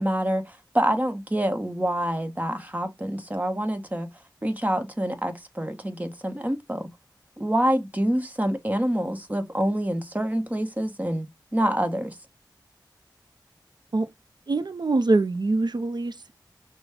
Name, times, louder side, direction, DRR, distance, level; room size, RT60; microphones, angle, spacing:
voice 1, 0.0-4.1 4.4-6.9 7.4-11.3 11.5-12.1, right 1 dB, 20° right, 1.1 m, -26 dB
voice 2, 14.5-16.3, right 2 dB, 65° right, 0.7 m, -24 dB
6.1 x 2.3 x 3.4 m
cardioid pair, 40°, 8 cm